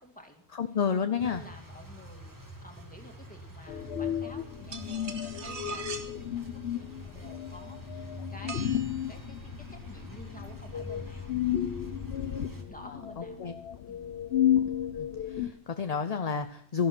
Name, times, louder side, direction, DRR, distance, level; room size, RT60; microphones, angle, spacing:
voice 1, 0.0-0.8 1.2-2.3 2.6-11.5 11.8-13.5 13.9-14.1, equal, 5° left, 3 dB, 2.2 m, -51 dB
voice 2, 0.6-1.4 13.4-13.5 15.0-16.9, left 6 dB, 40° left, 9 dB, 0.7 m, -30 dB
sound 1, 1.2-12.6, equal, 15° right, 1.7 m, -46 dB
sound 2, 3.7-15.5, left 10 dB, 70° left, 1.0 m, -33 dB
sound 3, 4.7-6.1 8.5-9.3, right 5 dB, 75° right, 1.5 m, -41 dB
14.0 x 11.0 x 6.1 m, 0.62 s
omnidirectional pair, 1.1 m